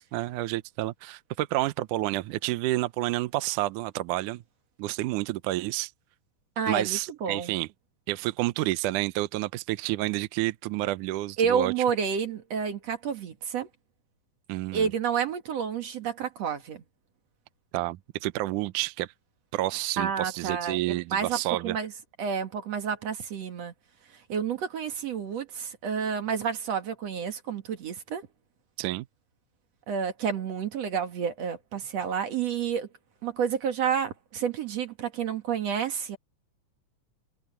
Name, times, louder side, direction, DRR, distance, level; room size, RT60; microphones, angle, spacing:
voice 1, 0.0-4.4 4.8-5.9 6.7-7.7 8.1-11.7 14.5-14.9 17.7-19.1 19.5-21.8 28.8-29.1, right 17 dB, 80° right, 2.1 m, -29 dB
voice 2, 6.6-7.5 11.4-13.7 14.7-16.8 20.0-21.9 22.2-23.7 24.3-28.3 29.9-32.9 33.2-36.2, right 7 dB, 55° right, 2.7 m, -30 dB
omnidirectional pair, 3.9 m